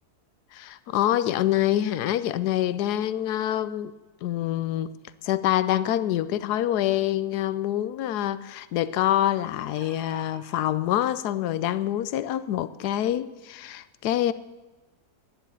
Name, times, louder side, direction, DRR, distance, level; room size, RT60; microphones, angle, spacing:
voice 1, 0.5-3.9 4.2-5.0 5.2-14.3, left 12 dB, 75° left, 1.2 m, -26 dB
sound 1, 7.2-7.3 7.7-7.8 9.3-10.5 11.5-11.6 12.0-12.1, right 2 dB, 20° right, 2.6 m, -49 dB
10.5 x 10.0 x 8.8 m
omnidirectional pair, 1.7 m